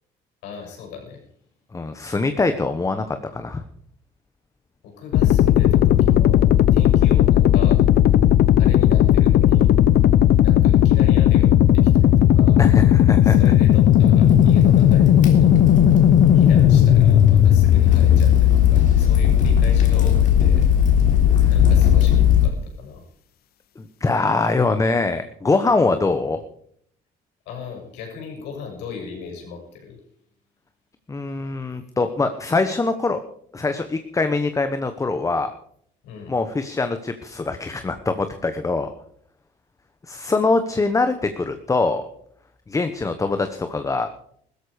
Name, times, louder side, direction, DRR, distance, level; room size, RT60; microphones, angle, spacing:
voice 1, 0.4-1.2 4.8-7.9 8.6-9.7 10.4-12.6 13.2-15.5 16.3-20.6 21.5-23.0 25.7-25.9 27.5-30.0 36.0-36.3, left 6 dB, 90° left, 2 dB, 6.9 m, -37 dB
voice 2, 1.7-3.6 12.6-13.5 21.4-21.5 23.8-26.4 31.1-33.2 33.5-35.5 36.3-38.9 40.1-42.0 42.7-44.1, left 3 dB, 20° left, 9 dB, 1.0 m, -23 dB
sound 1, 5.1-22.5, left 11 dB, 65° left, 0.7 m, -15 dB
Crackle, 13.2-22.5, left 2 dB, 50° left, 3.4 m, -24 dB
16.5 x 13.5 x 5.0 m, 0.65 s
cardioid pair, 110°, 17 cm